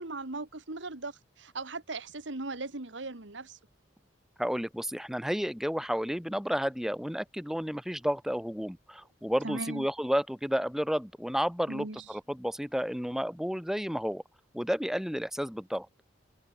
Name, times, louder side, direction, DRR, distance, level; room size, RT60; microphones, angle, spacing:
voice 1, 0.0-3.6 9.4-9.9 11.7-12.2, right 2 dB, 85° right, 2.0 m, -38 dB
voice 2, 4.4-14.2 14.5-15.9, equal, ahead, 1.5 m, -31 dB
head